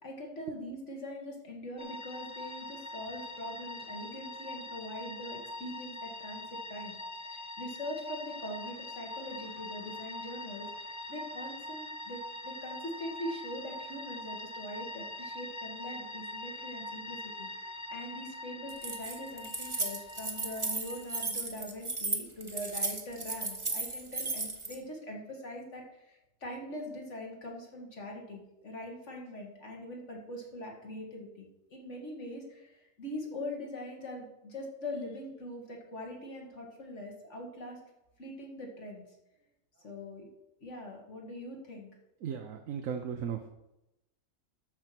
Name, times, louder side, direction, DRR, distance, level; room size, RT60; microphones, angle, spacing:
voice 1, 0.0-37.8 38.2-39.1 39.8-40.3 40.6-41.9, left 1 dB, 60° left, 0 dB, 2.2 m, -42 dB
sound 1, 1.8-21.3, left 1 dB, 20° left, 0.5 m, -43 dB
Keys jangling, 18.7-24.7, right 3 dB, 25° right, 1.1 m, -35 dB
voice 2, 42.2-43.5, right 7 dB, 75° right, 5 dB, 1.2 m, -36 dB
12.5 x 4.7 x 5.8 m, 0.90 s
omnidirectional pair, 1.4 m